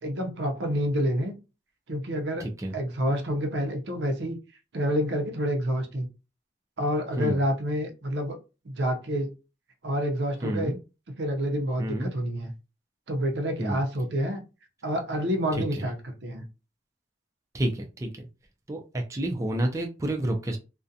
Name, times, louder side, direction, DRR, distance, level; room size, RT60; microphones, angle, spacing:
voice 1, 0.0-1.3 1.9-2.5 2.7-4.4 4.7-6.1 6.8-8.4 8.7-9.3 9.8-10.7 11.2-12.5 13.1-14.4 14.8-16.0 16.2-16.4, equal, 80° right, 5 dB, 0.6 m, -28 dB
voice 2, 2.4-2.7 7.2-7.4 10.4-10.8 11.8-12.1 13.6-13.8 15.6-15.9 17.5-18.2 18.7-20.6, right 1 dB, 15° right, 2 dB, 0.3 m, -29 dB
2.4 x 2.1 x 2.6 m, 0.30 s
head